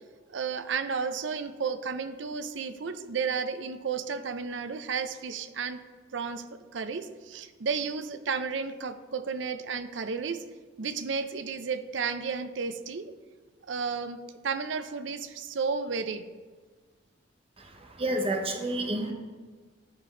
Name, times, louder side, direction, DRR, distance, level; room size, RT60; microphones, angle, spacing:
voice 1, 0.3-5.8 6.1-6.4 6.7-10.4 10.8-13.1 13.7-16.3, right 5 dB, 75° right, 11 dB, 0.5 m, -32 dB
voice 2, 17.6-19.1, right 1 dB, 30° right, 4 dB, 0.9 m, -30 dB
10.0 x 5.1 x 3.8 m, 1.4 s
head